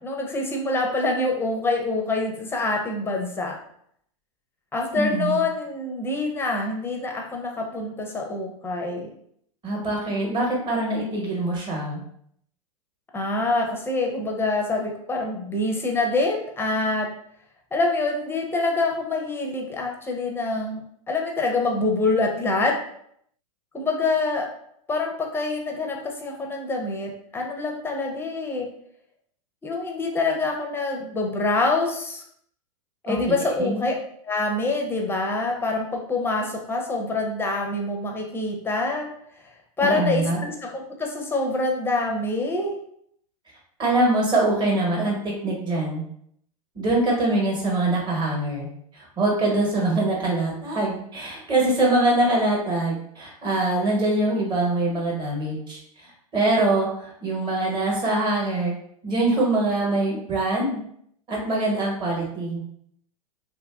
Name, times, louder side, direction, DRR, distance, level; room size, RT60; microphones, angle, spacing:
voice 1, 0.0-3.6 4.7-9.1 13.1-17.1 17.7-20.8 21.1-22.7 23.7-24.5 24.9-28.7 29.6-32.2 33.0-33.9 34.2-39.1 39.4-39.5 39.8-42.8, left 2 dB, 10° left, 1 dB, 0.5 m, -26 dB
voice 2, 4.9-5.4 9.6-12.0 33.1-33.2 33.6-33.8 39.8-40.4 43.8-45.1 45.4-46.0 46.7-48.7 48.9-55.8 56.0-58.7 59.0-60.8 61.3-62.6, right 2 dB, 25° right, -2 dB, 1.0 m, -23 dB
2.7 x 2.4 x 2.3 m, 0.69 s
hypercardioid pair, 95°, 18 cm